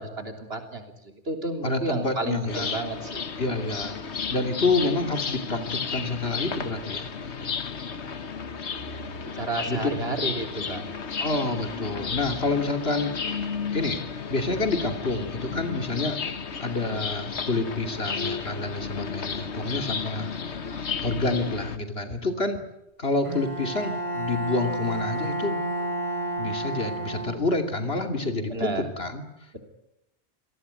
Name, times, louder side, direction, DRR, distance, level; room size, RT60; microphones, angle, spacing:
voice 1, 0.0-3.2 9.3-10.9 28.5-28.8, right 2 dB, 65° right, 5 dB, 3.7 m, -31 dB
voice 2, 1.6-2.7 3.4-7.4 9.7-9.9 11.2-13.1 13.7-14.0 14.3-16.2 16.6-20.3 21.0-22.6 23.0-25.6 26.4-29.2, left 3 dB, 65° left, 6 dB, 3.1 m, -28 dB
sound 1, 2.5-21.8, left 5 dB, 80° left, 1.6 m, -33 dB
Bowed string instrument, 23.2-27.8, right 1 dB, 30° right, 8.2 m, -31 dB
28.0 x 18.0 x 9.7 m, 0.86 s
omnidirectional pair, 1.1 m